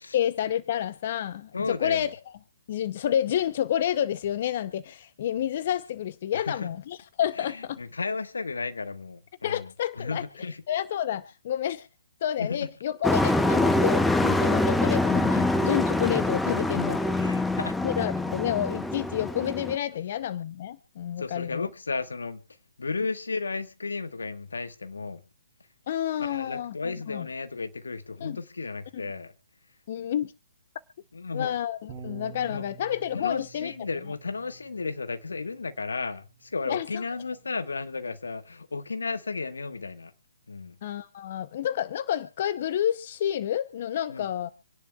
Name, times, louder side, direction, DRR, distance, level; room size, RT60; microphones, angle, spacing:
voice 1, 0.1-2.1 2.7-7.8 9.4-10.2 10.7-11.9 12.2-17.1 17.8-21.7 25.9-27.3 28.2-28.4 28.9-29.0 29.9-30.3 31.3-33.7 36.7-36.9 40.8-44.5, left 10 dB, 50° left, 0.6 m, -29 dB
voice 2, 1.5-2.1 6.3-6.7 7.4-10.6 12.4-12.7 17.2-17.8 21.2-22.4 22.8-25.2 26.2-29.3 31.1-31.5 32.5-32.6 33.1-40.1 40.5-40.8 44.1-44.3, left 4 dB, 80° left, 1.4 m, -34 dB
Truck, 13.0-19.8, left 2 dB, 5° left, 0.6 m, -25 dB
Bass guitar, 31.9-38.1, right 6 dB, 25° right, 5.6 m, -49 dB
26.5 x 10.5 x 2.3 m
hypercardioid pair, 135°, 0 cm